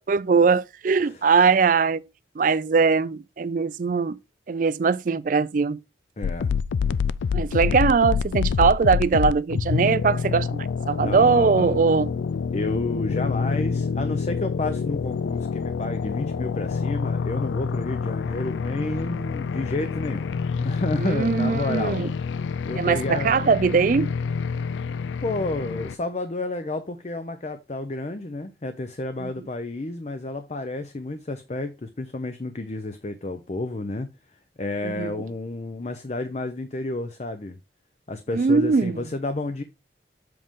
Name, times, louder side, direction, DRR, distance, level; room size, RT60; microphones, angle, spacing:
voice 1, 0.1-2.0 2.4-4.2 4.5-5.8 7.3-12.1 21.0-22.1 22.8-24.1 29.2-29.3 34.8-35.1 38.3-39.1, right 5 dB, 45° right, 0.4 m, -21 dB
sound 1, 6.2-25.9, left 5 dB, 90° left, 0.4 m, -27 dB
voice 2, 6.2-6.5 11.0-11.8 12.5-22.0 22.7-23.4 25.2-34.1 34.6-37.6 38.1-39.6, left 2 dB, 35° left, 0.6 m, -30 dB
7.7 x 5.5 x 3.6 m
head